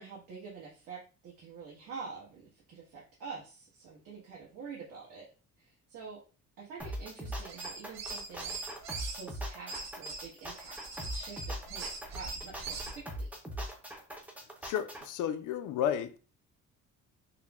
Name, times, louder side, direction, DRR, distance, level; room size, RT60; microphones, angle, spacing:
voice 1, 0.0-5.3 5.6-6.2 6.6-8.6 9.0-13.3, right 5 dB, 85° right, 1.2 m, -47 dB
sound 1, 6.8-15.1, equal, 5° right, 0.4 m, -41 dB
sound 2, 7.4-9.2 9.7-13.0, right 4 dB, 60° right, 0.8 m, -41 dB
voice 2, 14.6-16.2, left 9 dB, 85° left, 0.5 m, -32 dB
5.5 x 2.0 x 2.3 m
cardioid pair, 175°, 30 cm